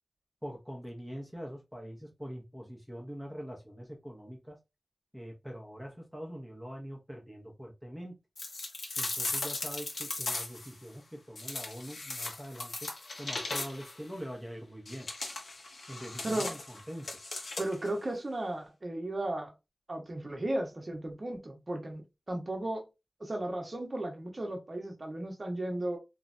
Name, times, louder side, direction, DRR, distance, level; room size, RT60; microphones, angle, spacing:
voice 1, 0.4-4.6 5.1-8.2 9.0-12.9 13.2-15.1 15.9-17.1, equal, 5° right, 0.7 m, -43 dB
sound 1, 8.4-10.7 11.4-14.0 14.9-17.9, left 2 dB, 70° left, 0.7 m, -37 dB
voice 2, 17.6-19.5 19.9-22.9 23.2-26.0, right 1 dB, 35° right, 0.8 m, -35 dB
3.1 x 2.1 x 2.5 m
wide cardioid pair, 85°, 0 cm